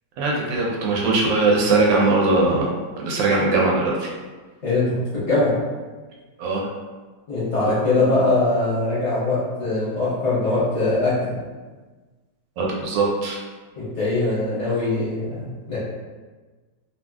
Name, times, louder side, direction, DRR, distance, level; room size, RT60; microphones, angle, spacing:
voice 1, 0.2-4.1 6.4-6.6 12.6-13.4, right 3 dB, 80° right, -2 dB, 1.3 m, -20 dB
voice 2, 4.6-5.6 7.3-11.4 13.8-15.8, left 2 dB, 55° left, -10 dB, 0.8 m, -22 dB
2.9 x 2.6 x 2.3 m, 1.3 s
omnidirectional pair, 2.0 m